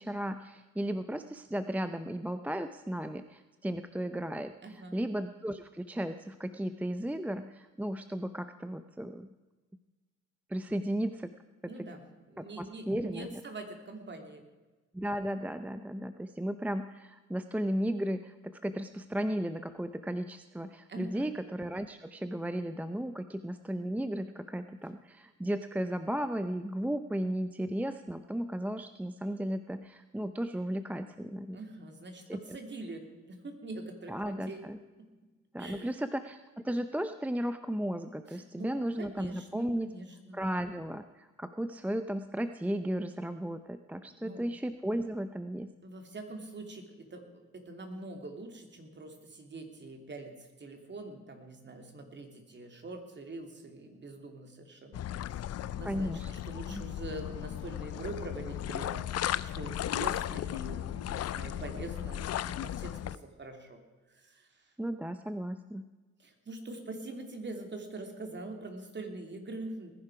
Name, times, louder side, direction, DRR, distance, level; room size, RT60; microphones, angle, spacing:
voice 1, 0.0-9.3 10.5-11.3 11.6-11.7 12.4-13.4 14.9-31.6 32.3-32.4 34.1-34.8 35.5-39.9 40.3-45.7 55.8-56.3 56.7-56.8 64.8-65.8, right 1 dB, 5° right, 10 dB, 0.6 m, -35 dB
voice 2, 4.6-5.0 11.6-14.4 20.9-21.3 31.5-34.6 35.0-35.1 35.6-35.9 38.3-38.7 39.0-40.4 44.2-44.4 45.8-63.8 64.1-64.7 66.2-69.9, right 2 dB, 35° right, 5 dB, 3.1 m, -44 dB
sound 1, 54.9-63.2, left 12 dB, 55° left, 0.6 m, -36 dB
20.0 x 11.0 x 4.9 m, 1.3 s
cardioid pair, 90°, 30 cm